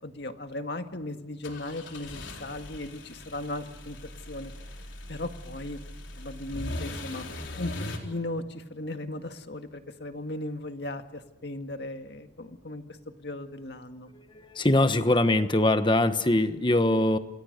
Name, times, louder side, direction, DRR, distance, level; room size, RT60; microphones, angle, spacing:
voice 1, 0.0-4.0 4.3-4.5 5.1-5.8 6.1-7.3 7.6-7.7 8.0-12.8 13.2-14.1, left 1 dB, 60° left, 7 dB, 1.9 m, -37 dB
sound 1, 1.4-8.0, left 1 dB, 85° left, 4.1 m, -40 dB
voice 2, 14.1-17.2, left 1 dB, 25° left, 10 dB, 1.3 m, -23 dB
29.0 x 27.5 x 6.8 m, 0.95 s
head